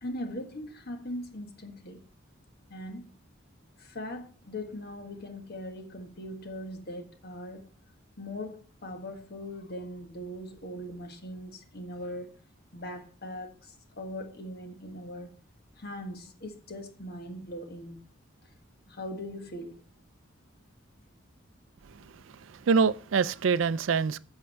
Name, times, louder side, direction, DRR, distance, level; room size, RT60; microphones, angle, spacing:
voice 1, 0.0-2.0 2.7-3.1 3.8-7.6 8.2-12.3 12.7-15.3 15.8-18.0 18.9-19.8, left 1 dB, 50° left, 1.6 m, -40 dB
voice 2, 22.3-24.2, right 5 dB, 70° right, 0.4 m, -25 dB
8.4 x 8.2 x 4.4 m
head